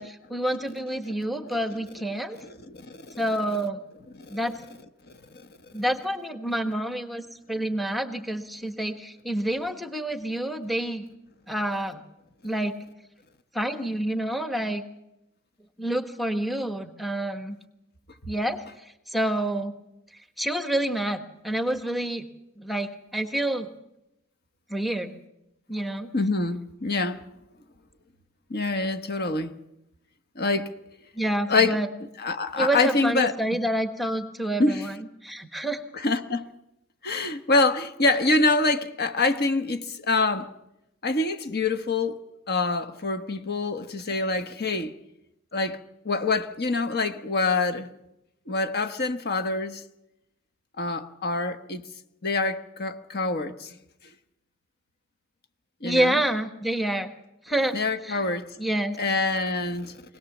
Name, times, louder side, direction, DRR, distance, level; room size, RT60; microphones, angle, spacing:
voice 1, 0.0-2.4 3.2-3.8 4.3-4.5 5.7-11.0 11.5-12.0 12.4-12.7 13.5-14.8 15.8-17.6 18.3-18.6 19.1-19.7 20.4-22.3 22.6-23.7 24.7-25.2 25.7-26.1 31.1-31.9 32.6-35.8 55.8-57.1 57.4-57.8 58.0-58.2 58.6-59.0, right 1 dB, ahead, 1.3 m, -28 dB
voice 2, 2.4-3.2 4.2-4.4 5.3-5.5 18.2-18.3 26.1-27.2 28.5-29.6 30.3-30.7 31.5-31.8 32.2-33.3 34.6-34.8 35.9-36.5 37.0-40.5 41.0-42.2 42.5-44.9 45.5-47.9 48.5-49.8 50.8-51.8 52.2-53.7 55.8-56.2 57.7-58.5 59.0-60.0, left 3 dB, 50° left, 1.3 m, -26 dB
24.5 x 18.0 x 7.2 m
head